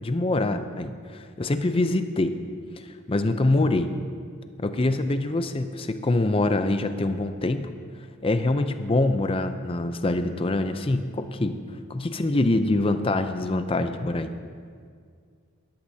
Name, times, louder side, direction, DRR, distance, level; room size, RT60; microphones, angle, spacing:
voice 1, 0.0-2.4 3.1-3.9 4.6-7.7 8.2-11.6 11.9-14.3, left 2 dB, 25° left, 9 dB, 0.5 m, -24 dB
17.5 x 11.5 x 2.8 m, 2.1 s
head